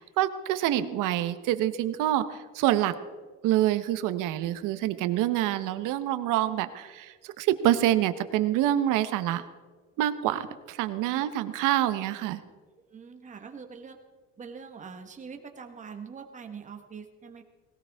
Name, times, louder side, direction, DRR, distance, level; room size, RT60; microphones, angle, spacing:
voice 1, 0.0-2.9 3.4-9.4 10.0-12.4, right 13 dB, 75° right, 11 dB, 1.1 m, -26 dB
voice 2, 12.9-14.0 14.4-17.4, right 5 dB, 25° right, 5 dB, 1.4 m, -43 dB
19.5 x 18.0 x 3.6 m, 1.5 s
cardioid pair, 170°, 31 cm